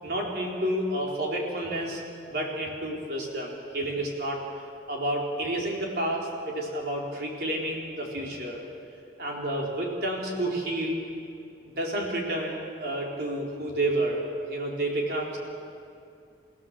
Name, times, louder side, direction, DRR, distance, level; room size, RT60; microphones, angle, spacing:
voice 1, 0.0-2.0 2.3-4.4 4.9-8.6 9.2-11.0 11.6-15.4, right 1 dB, 60° right, -1 dB, 4.2 m, -30 dB
29.0 x 15.5 x 7.5 m, 2.4 s
head